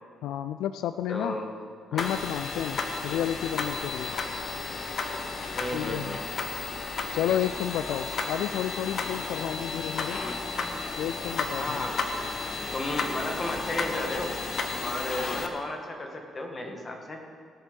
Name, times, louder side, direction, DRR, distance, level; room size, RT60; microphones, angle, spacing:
voice 1, 0.2-1.4 1.9-4.1 5.7-6.2 7.1-10.2 10.9-11.8, left 10 dB, 85° left, 11 dB, 0.3 m, -31 dB
voice 2, 1.1-1.5 1.9-2.1 5.5-6.2 11.6-12.0 12.7-14.4 14.8-17.2, left 1 dB, 30° left, 2 dB, 1.9 m, -33 dB
sound 1, 2.0-15.5, left 4 dB, 45° left, 1.1 m, -33 dB
sound 2, 6.7-7.0 7.2-15.1, right 3 dB, 70° right, 2.2 m, -48 dB
18.0 x 6.7 x 5.3 m, 2.1 s
cardioid pair, 90°, 0 cm